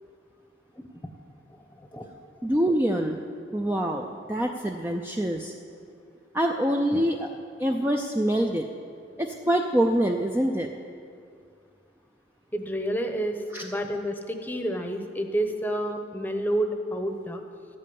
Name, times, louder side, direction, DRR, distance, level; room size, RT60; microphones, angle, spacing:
voice 1, 1.5-2.1 12.5-17.4, right 1 dB, 10° left, 5 dB, 0.8 m, -29 dB
voice 2, 2.4-3.2 3.5-5.5 6.3-7.3 7.6-8.7 9.2-10.7 13.5-13.7, right 1 dB, 10° right, 2 dB, 0.4 m, -25 dB
12.0 x 8.6 x 8.5 m, 2.4 s
head